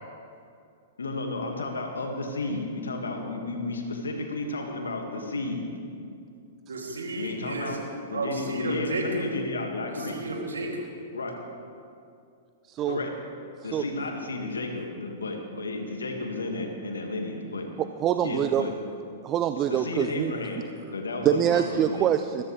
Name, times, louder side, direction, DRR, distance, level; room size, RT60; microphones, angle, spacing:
voice 1, 1.0-5.7 7.2-7.8 8.1-10.2 11.1-11.3 12.9-13.1 13.6-17.7 18.2-18.7 19.7-22.1, left 2 dB, 80° left, 2 dB, 2.1 m, -32 dB
voice 2, 6.7-7.8 8.1-9.3 9.9-10.9, right 2 dB, 75° right, -1 dB, 3.0 m, -32 dB
voice 3, 12.7-13.0 13.6-13.8 17.8-18.7 19.2-20.3 21.2-22.4, right 10 dB, 30° right, 9 dB, 0.5 m, -25 dB
21.5 x 14.0 x 3.4 m, 2.5 s
figure-of-eight pair, 105°, 0 cm